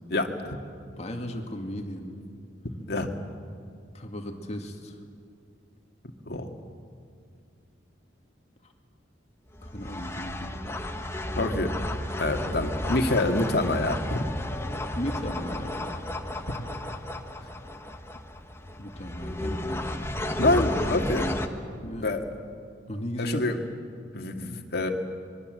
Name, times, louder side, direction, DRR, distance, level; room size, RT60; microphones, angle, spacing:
voice 1, 0.1-0.6 2.9-3.1 6.3-6.5 11.4-11.7 12.2-14.2 16.5-16.6 20.4-21.3 22.0-22.2 23.2-23.6 24.1-24.9, left 2 dB, 55° left, 3 dB, 2.0 m, -26 dB
voice 2, 1.0-2.2 3.9-5.0 9.6-10.6 14.9-15.8 18.8-19.9 21.8-22.1 22.9-23.5, equal, 35° left, 4 dB, 2.2 m, -36 dB
sound 1, 9.5-21.5, left 1 dB, 15° left, 1.2 m, -33 dB
25.5 x 22.5 x 7.8 m, 2.3 s
head